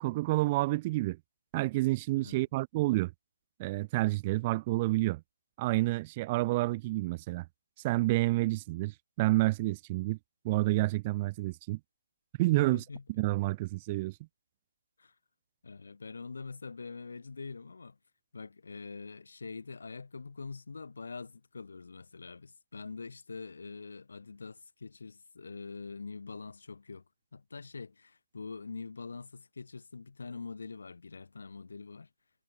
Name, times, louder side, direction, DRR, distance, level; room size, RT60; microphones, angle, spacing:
voice 1, 0.0-1.2 1.5-3.1 3.6-5.2 5.6-7.5 7.8-10.2 10.4-11.8 12.4-12.8 13.2-14.2, right 20 dB, 25° right, 0.3 m, -29 dB
voice 2, 12.5-13.0 15.0-15.1 15.6-18.0 18.3-27.0 27.3-32.1, left 4 dB, 70° left, 5.5 m, -44 dB
figure-of-eight pair, 155°, 0 cm